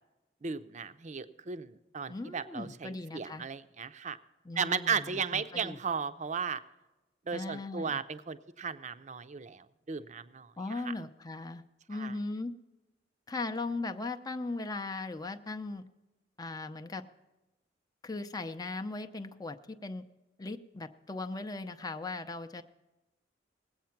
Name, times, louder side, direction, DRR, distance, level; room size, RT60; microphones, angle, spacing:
voice 1, 0.4-4.2 4.6-6.6 7.3-10.8 11.9-12.2, right 6 dB, 40° right, 12 dB, 0.6 m, -35 dB
voice 2, 2.1-3.5 4.4-5.8 7.3-8.0 10.6-11.6 11.9-12.5 13.3-15.8 16.4-17.0 18.0-20.0 20.4-22.6, left 3 dB, 20° left, 7 dB, 0.5 m, -38 dB
19.5 x 8.4 x 5.8 m, 1.0 s
head